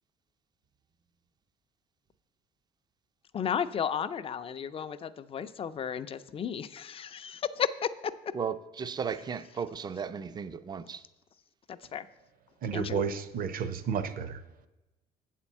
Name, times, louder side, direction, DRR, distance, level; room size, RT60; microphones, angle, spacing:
voice 1, 3.3-8.1 11.7-12.1 12.7-13.0, left 8 dB, 35° left, 12 dB, 0.4 m, -33 dB
voice 2, 8.3-11.0, right 6 dB, 25° right, 13 dB, 0.4 m, -35 dB
voice 3, 12.6-14.4, right 7 dB, 55° right, 11 dB, 0.7 m, -32 dB
8.1 x 4.4 x 7.2 m, 1.0 s
cardioid pair, 110°, 17 cm